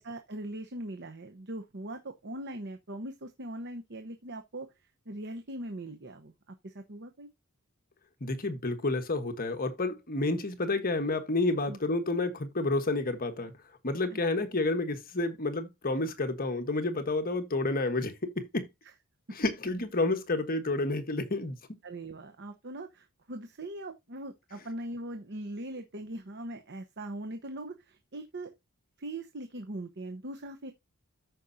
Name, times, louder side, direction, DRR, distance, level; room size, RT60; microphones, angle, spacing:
voice 1, 0.0-4.7 5.1-7.3 11.7-11.8 14.1-14.2 21.8-28.5 29.0-30.7, right 1 dB, 50° right, 0.9 m, -41 dB
voice 2, 8.2-13.5 13.8-18.7 19.3-21.5, left 2 dB, 40° left, 1.3 m, -30 dB
13.5 x 5.3 x 2.7 m
head